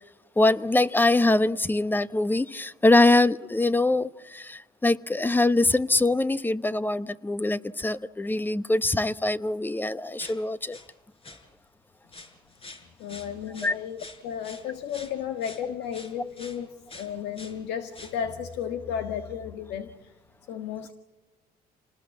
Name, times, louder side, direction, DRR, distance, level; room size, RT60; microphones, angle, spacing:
voice 1, 0.4-10.8 13.6-13.7, left 2 dB, 10° left, 1.0 m, -23 dB
sound 1, 10.2-10.9 11.2-11.4 12.1-16.6 16.9-17.6 17.9-18.3 18.6-18.8 19.1-19.2 20.0-20.1, left 3 dB, 35° left, 5.1 m, -46 dB
voice 2, 13.0-20.1 20.5-20.9, left 8 dB, 85° left, 1.6 m, -34 dB
29.0 x 19.5 x 8.6 m
cardioid pair, 110°, 17 cm